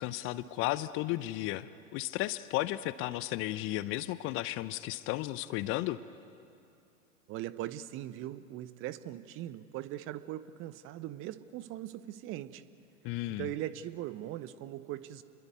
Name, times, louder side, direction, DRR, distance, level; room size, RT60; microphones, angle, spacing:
voice 1, 0.0-6.0 13.0-13.5, left 16 dB, 30° left, 16 dB, 0.7 m, -34 dB
voice 2, 7.3-12.6 13.4-15.2, right 13 dB, 35° right, 15 dB, 0.9 m, -40 dB
28.5 x 22.0 x 9.4 m, 2.6 s
figure-of-eight pair, 95°, 39 cm